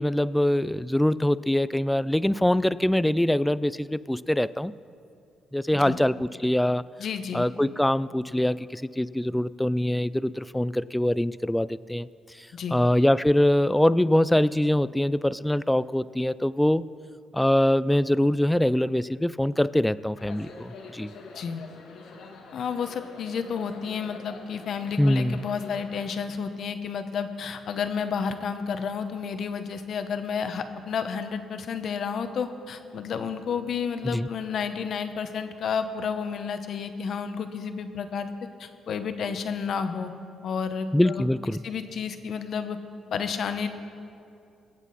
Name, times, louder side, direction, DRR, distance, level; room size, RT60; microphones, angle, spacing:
voice 1, 0.0-4.7 5.5-6.8 7.3-12.1 12.7-16.8 17.3-21.1 25.0-25.5 34.0-34.3 40.9-41.6, left 1 dB, 5° left, 17 dB, 0.3 m, -23 dB
voice 2, 7.0-7.5 12.5-12.8 21.3-21.6 22.5-38.3 38.6-40.1 40.4-41.3 41.6-42.8 43.1-43.7, left 6 dB, 60° left, 8 dB, 0.9 m, -31 dB
sound 1, 20.2-26.2, left 4 dB, 90° left, 1.9 m, -46 dB
22.0 x 8.2 x 4.2 m, 2.5 s
cardioid pair, 90°, 0 cm